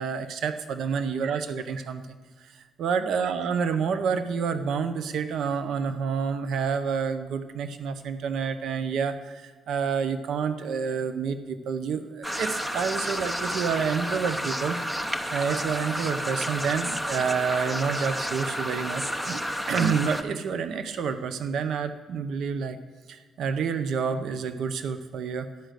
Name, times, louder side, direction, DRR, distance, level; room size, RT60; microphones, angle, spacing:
voice 1, 0.0-14.8 15.3-19.4 19.7-22.8 23.1-25.5, right 6 dB, 70° right, 10 dB, 0.6 m, -28 dB
sound 1, 12.2-20.2, equal, 15° right, 0.9 m, -31 dB
11.5 x 5.0 x 6.4 m, 1.5 s
supercardioid pair, 50°, 0 cm